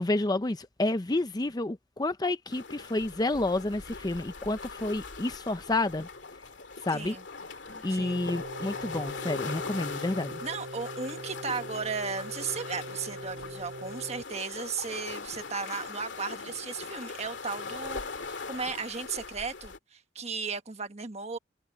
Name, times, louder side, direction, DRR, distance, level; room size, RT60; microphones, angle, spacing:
voice 1, 0.0-6.1 6.8-7.2 7.8-10.4, left 2 dB, 20° left, 0.6 m, -30 dB
sound 1, 2.5-19.8, left 4 dB, 75° left, 2.3 m, -41 dB
voice 2, 6.9-7.2 7.9-8.2 9.9-10.0 10.4-18.0 18.3-21.4, right 5 dB, 35° right, 1.4 m, -35 dB
Sigh, 7.5-8.1, equal, 5° left, 4.2 m, -57 dB
sound 2, 8.0-14.2, right 1 dB, 65° right, 2.4 m, -43 dB
head